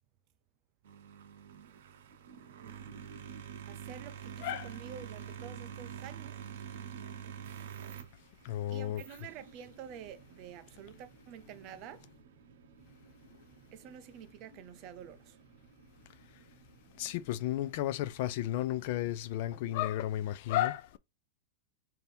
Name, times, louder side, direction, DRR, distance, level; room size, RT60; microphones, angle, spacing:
sound 1, 0.8-19.9, right 8 dB, 65° right, 0.7 m, -49 dB
voice 1, 3.6-6.4 8.7-12.1 13.7-15.4, right 9 dB, 35° right, 0.5 m, -49 dB
voice 2, 4.4-4.7 8.4-9.0 17.0-21.0, left 13 dB, 45° left, 0.3 m, -33 dB
3.4 x 2.7 x 4.2 m
supercardioid pair, 170°, 0 cm